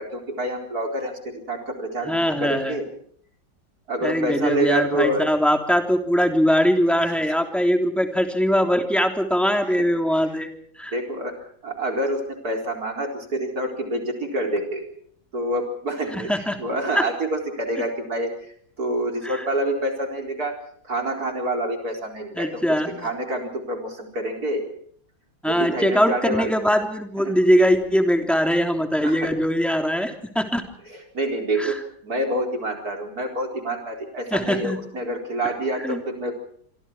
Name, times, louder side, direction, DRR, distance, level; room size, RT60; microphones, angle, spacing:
voice 1, 0.0-2.9 3.9-5.3 7.0-7.1 10.9-11.3 11.6-14.9 15.3-16.3 16.6-18.3 18.8-20.5 20.8-22.5 23.0-24.7 25.4-26.5 27.2-27.3 29.0-29.3 30.9-31.8 32.0-36.4, right 1 dB, 55° right, 3 dB, 4.7 m, -27 dB
voice 2, 2.0-2.8 4.0-10.5 10.8-10.9 16.1-16.6 16.9-17.0 19.3-19.4 22.3-23.1 25.4-30.6 31.6-31.7 34.3-34.8 35.8-36.0, equal, ahead, 4 dB, 3.2 m, -21 dB
26.5 x 25.0 x 4.5 m, 0.62 s
omnidirectional pair, 2.0 m